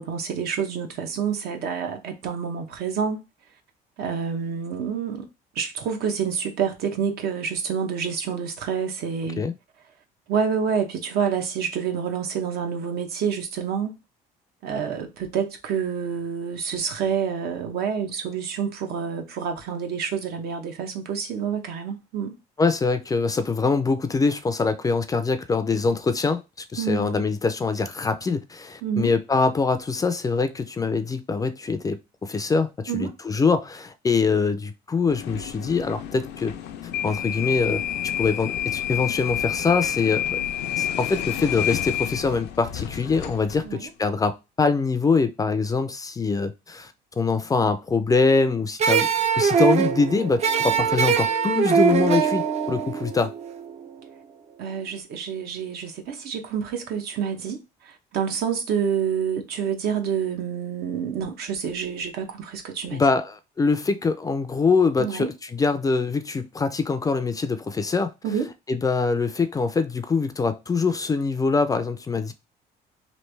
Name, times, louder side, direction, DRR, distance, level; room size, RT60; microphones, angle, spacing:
voice 1, 0.0-3.2 4.0-5.3 5.6-9.4 10.3-14.0 14.6-22.4 26.8-27.3 28.8-29.1 32.9-33.1 43.6-43.9 54.6-57.6 57.8-63.0 65.0-65.3 68.2-68.5, right 7 dB, 70° right, 0.8 m, -28 dB
voice 2, 22.6-26.4 26.7-36.5 37.0-37.8 38.2-40.4 40.8-53.3 62.9-68.1 68.7-72.3, left 4 dB, 20° left, 0.4 m, -24 dB
sound 1, 35.1-43.7, left 10 dB, 80° left, 0.5 m, -29 dB
sound 2, 48.8-53.9, right 7 dB, 40° right, 0.4 m, -22 dB
3.2 x 2.6 x 3.2 m
cardioid pair, 110°, 17 cm